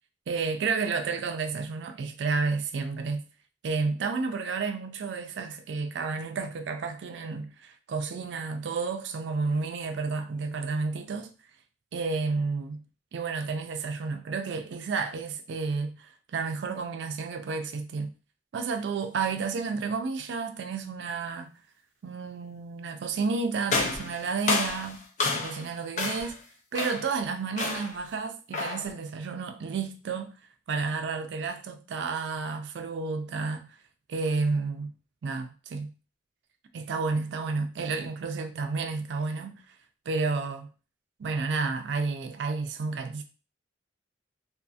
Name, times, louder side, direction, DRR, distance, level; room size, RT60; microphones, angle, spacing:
voice 1, 0.3-3.2 3.6-11.3 11.9-12.8 13.1-18.1 18.5-21.5 22.0-25.0 25.3-26.4 26.7-30.4 30.7-33.7 34.1-34.9 35.2-35.9 36.7-39.6 40.1-40.7 41.2-43.2, right 4 dB, 70° right, 0.3 m, -31 dB
sound 1, 23.7-25.7 26.0-26.4 26.7-27.1 27.6-28.0 28.5-28.9, left 3 dB, 40° left, 0.5 m, -30 dB
2.6 x 2.4 x 2.3 m
head